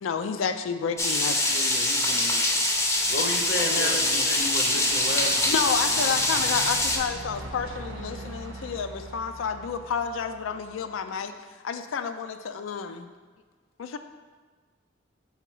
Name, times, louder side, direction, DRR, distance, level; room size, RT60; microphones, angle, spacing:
voice 1, 0.0-1.4 5.4-11.3 11.6-13.1 13.8-14.0, left 6 dB, 85° left, 8 dB, 0.4 m, -30 dB
sound 1, 1.0-7.0, left 1 dB, 15° left, 0.5 m, -24 dB
voice 2, 1.5-2.8 3.6-4.4 5.1-5.5, right 2 dB, 40° right, 5 dB, 0.4 m, -40 dB
Truck, 1.6-11.0, right 2 dB, 90° right, 0.7 m, -42 dB
voice 3, 3.1-5.4, left 2 dB, 55° left, 4 dB, 0.7 m, -31 dB
5.7 x 3.9 x 4.5 m, 1.4 s
head